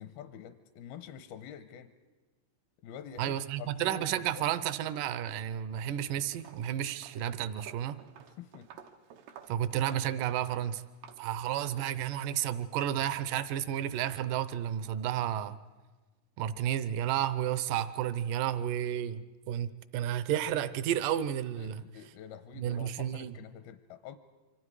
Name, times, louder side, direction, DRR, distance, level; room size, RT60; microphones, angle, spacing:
voice 1, 0.0-1.9 2.8-4.5 8.4-8.7 21.5-24.2, left 9 dB, 80° left, 9 dB, 2.7 m, -47 dB
voice 2, 3.2-8.0 9.5-10.8 11.2-15.6 16.4-19.2 19.5-21.8 22.6-23.3, right 11 dB, 75° right, 14 dB, 2.1 m, -32 dB
Walk footsteps, 5.7-6.0 6.3-12.4, right 8 dB, 90° right, 3.4 m, -53 dB
27.5 x 25.0 x 4.9 m, 1.3 s
omnidirectional pair, 4.5 m